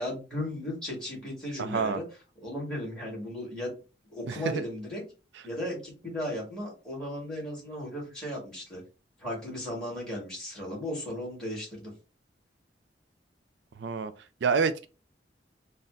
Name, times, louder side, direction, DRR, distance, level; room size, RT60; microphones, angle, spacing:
voice 1, 0.0-2.0 2.4-3.7 4.1-5.0 5.4-8.8 9.2-11.9, left 1 dB, 5° left, 1.8 m, -36 dB
voice 2, 1.6-2.0 4.3-4.6 13.8-14.1 14.4-14.9, right 5 dB, 85° right, 0.4 m, -28 dB
4.0 x 2.1 x 3.6 m
head